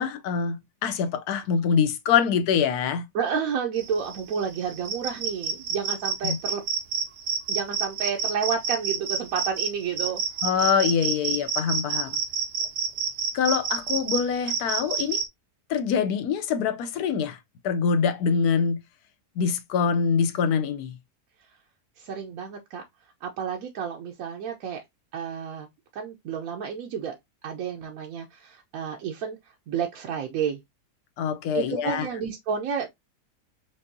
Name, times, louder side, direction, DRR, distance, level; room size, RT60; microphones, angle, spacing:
voice 1, 0.0-3.0 6.2-6.4 10.4-12.2 13.3-15.2 15.7-17.4 17.6-18.8 19.4-20.9 31.2-32.1, left 6 dB, 75° left, 1.1 m, -24 dB
voice 2, 3.1-6.6 7.5-10.2 22.0-22.8 23.2-24.8 25.1-25.7 25.9-27.1 27.4-29.4 29.7-30.6 31.5-32.9, right 7 dB, 65° right, 1.0 m, -30 dB
sound 1, 3.8-15.2, right 6 dB, 85° right, 1.4 m, -29 dB
5.3 x 2.7 x 2.6 m
omnidirectional pair, 1.8 m